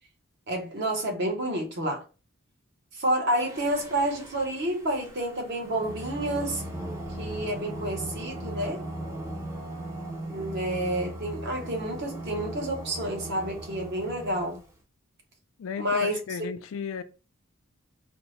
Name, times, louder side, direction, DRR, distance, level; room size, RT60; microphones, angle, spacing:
voice 1, 0.5-2.0 2.9-6.6 7.2-8.9 10.3-14.6 15.8-16.2, right 1 dB, 50° right, 0.8 m, -29 dB
Singing, 3.4-14.7, right 1 dB, 15° right, 0.5 m, -38 dB
voice 2, 15.6-17.0, left 6 dB, 65° left, 0.3 m, -34 dB
3.4 x 2.0 x 3.0 m
head